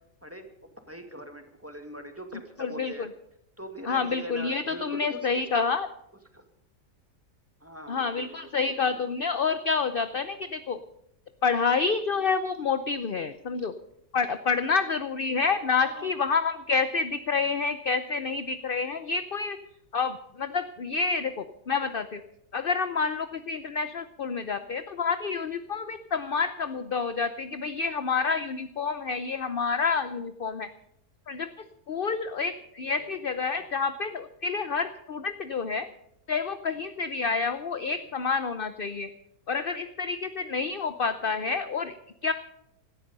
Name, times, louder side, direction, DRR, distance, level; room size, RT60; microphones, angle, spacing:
voice 1, 0.2-3.1 3.6-5.7 6.3-6.4 7.6-8.9 15.9-16.1, equal, 10° right, 5 dB, 2.0 m, -42 dB
voice 2, 2.6-3.1 3.9-5.9 7.9-10.8 11.4-13.7 14.1-19.6 19.9-22.2 22.5-30.7 31.3-35.9 36.3-39.1 39.5-41.9 42.2-42.3, left 5 dB, 50° left, 11 dB, 0.7 m, -28 dB
17.0 x 13.5 x 5.4 m, 0.78 s
omnidirectional pair, 1.7 m